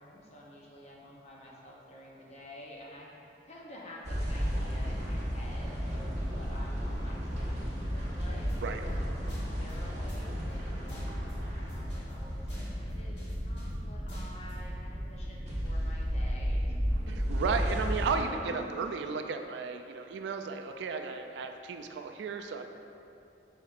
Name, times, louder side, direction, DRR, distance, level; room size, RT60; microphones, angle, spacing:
voice 1, 0.0-3.2 3.5-8.5 9.5-11.2 11.5-17.2 17.6-18.7, left 1 dB, 40° left, -4 dB, 0.6 m, -49 dB
sound 1, 4.0-18.2, equal, 40° right, 1.0 m, -33 dB
sound 2, 8.5-8.6 8.9-9.0 9.3-9.7 10.1-10.2 10.5-10.6 10.9-11.3 11.7-13.8 14.1-14.5, equal, 80° left, 1.2 m, -44 dB
voice 2, 17.3-22.6, right 5 dB, 75° right, 6 dB, 0.3 m, -34 dB
5.1 x 4.3 x 2.4 m, 2.8 s
head